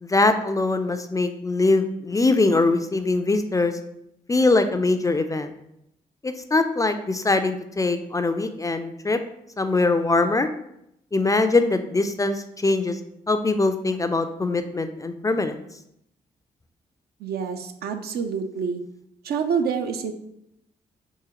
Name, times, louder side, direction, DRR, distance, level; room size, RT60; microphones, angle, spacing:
voice 1, 0.0-3.7 4.3-5.5 6.2-9.2 9.6-10.5 11.1-13.0 13.3-15.6, left 3 dB, 20° left, 8 dB, 0.3 m, -22 dB
voice 2, 17.2-18.8 19.2-20.1, right 6 dB, 60° right, 7 dB, 0.4 m, -27 dB
3.7 x 2.7 x 2.9 m, 0.78 s
hypercardioid pair, 40°, 18 cm